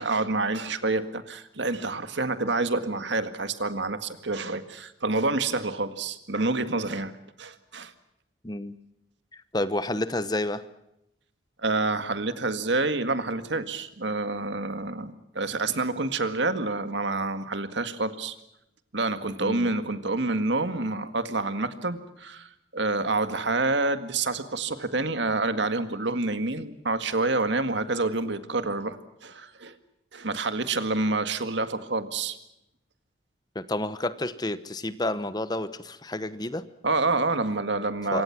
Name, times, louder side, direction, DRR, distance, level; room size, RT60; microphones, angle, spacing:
voice 1, 0.0-7.1 7.4-7.9 11.6-18.4 18.9-29.0 29.2-29.8 30.1-32.4 36.8-38.2, right 3 dB, 70° right, 10 dB, 1.9 m, -28 dB
voice 2, 8.4-8.8 9.3-10.6 19.4-19.7 33.5-36.7 38.1-38.2, left 1 dB, 20° left, 13 dB, 1.0 m, -30 dB
26.5 x 24.0 x 6.0 m, 0.84 s
head